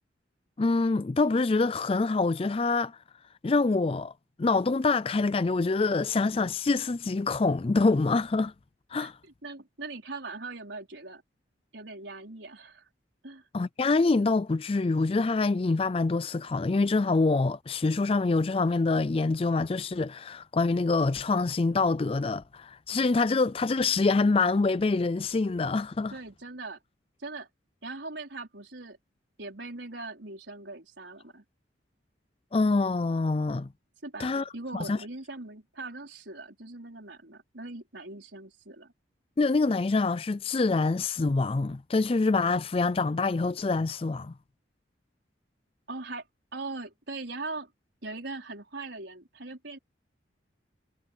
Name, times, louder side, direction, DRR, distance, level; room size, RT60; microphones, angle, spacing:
voice 1, 0.6-3.0 3.4-4.1 4.4-8.5 8.9-9.2 13.5-26.2 32.5-33.7 34.2-34.4 34.7-35.0 39.4-44.3, left 3 dB, 30° left, 0.4 m, -25 dB
voice 2, 9.0-11.2 11.7-12.9 13.2-13.5 26.1-26.8 27.2-27.5 27.8-29.0 29.4-31.4 34.0-38.9 45.9-46.3 46.5-47.7 48.0-49.8, right 3 dB, 75° right, 4.6 m, -40 dB
head